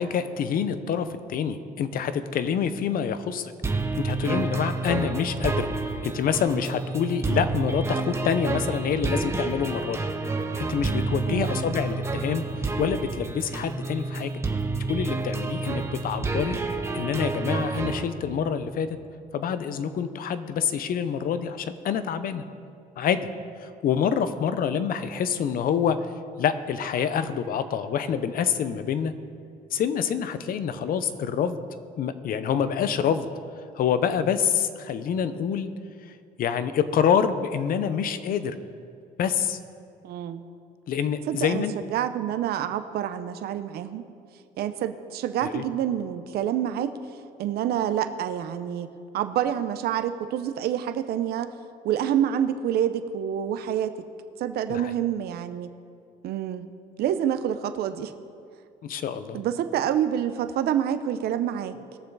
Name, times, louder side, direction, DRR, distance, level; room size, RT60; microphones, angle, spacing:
voice 1, 0.0-3.5 4.0-5.7 6.0-10.0 10.6-12.4 12.8-14.4 14.9-16.6 16.9-19.0 19.3-22.4 23.0-23.3 23.6-26.0 26.4-29.1 29.7-31.6 32.0-33.3 33.7-35.7 36.4-38.5 39.2-39.6 40.9-41.7 45.4-45.6 54.7-54.9 58.8-59.4, left 8 dB, 60° left, 12 dB, 0.8 m, -26 dB
sound 1, 3.6-18.0, right 3 dB, 15° right, 0.9 m, -29 dB
voice 2, 11.2-11.6 40.0-40.4 41.3-41.6 41.9-44.0 44.6-46.9 47.4-48.9 49.1-51.5 51.8-54.0 54.4-55.7 56.2-56.7 57.0-58.1 59.3-61.9, right 10 dB, 70° right, 10 dB, 0.7 m, -27 dB
20.0 x 7.0 x 4.0 m, 2.4 s
cardioid pair, 110°, 17 cm